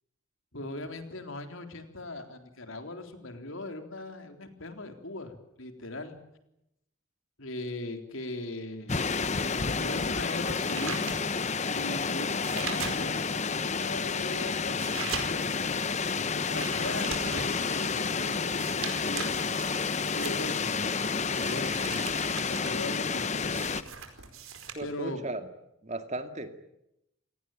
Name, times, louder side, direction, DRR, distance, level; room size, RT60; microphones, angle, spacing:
voice 1, 0.5-6.2 7.4-11.2 11.7-15.7 16.3-19.5 20.2-20.9 21.1-22.0 22.3-23.6 24.8-25.2, left 2 dB, 75° left, 6 dB, 3.8 m, -39 dB
sound 1, 8.9-23.8, left 5 dB, 35° left, 0.9 m, -30 dB
sound 2, 9.6-13.4 13.9-24.7, right 6 dB, 80° right, 4.9 m, -41 dB
voice 2, 24.7-25.5 25.8-26.5, right 2 dB, 35° right, 8 dB, 2.2 m, -36 dB
29.0 x 18.5 x 9.1 m, 0.84 s
head